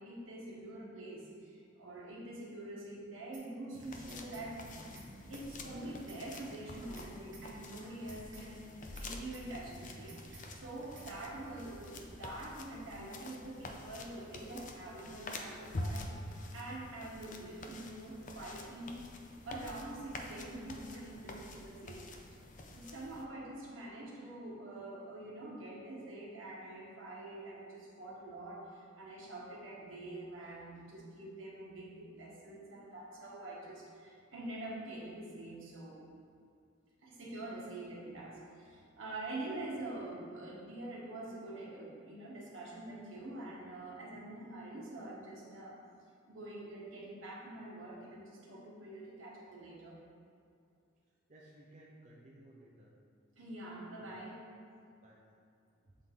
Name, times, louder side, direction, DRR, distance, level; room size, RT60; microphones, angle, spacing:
voice 1, 0.0-19.0 19.4-22.0 22.3-22.4 22.7-36.0 37.0-45.8 46.3-50.0 53.4-54.4, right 1 dB, 90° right, -4 dB, 1.4 m, -45 dB
sound 1, 3.3-3.5 3.8-4.5 4.8-5.1 5.3-5.5 5.8-6.5 6.8-7.1 7.3-7.5 7.8-8.5 8.8-9.1 9.3-9.5 9.8-10.5 10.8-11.1, right 4 dB, 70° right, 1.1 m, -56 dB
sound 2, 3.7-23.2, left 2 dB, 40° left, 0.5 m, -47 dB
voice 2, 51.3-52.9 54.0-54.2 55.0-55.2, right 1 dB, 40° right, -6 dB, 0.7 m, -58 dB
7.7 x 3.9 x 3.8 m, 2.4 s
head